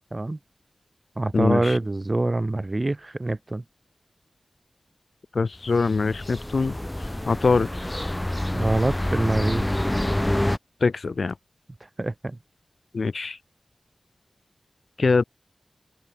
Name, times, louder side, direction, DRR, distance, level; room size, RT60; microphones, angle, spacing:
voice 1, 1.2-3.6 8.5-9.8 12.0-12.4, right 2 dB, 35° right, 1.8 m, -25 dB
voice 2, 5.4-6.7 7.3-7.7 10.8-11.3 12.9-13.3 15.0-15.2, left 4 dB, 70° left, 0.6 m, -22 dB
sound 1, 5.7-10.6, left 1 dB, 15° left, 2.5 m, -27 dB
open air
wide cardioid pair, 80°, 0 cm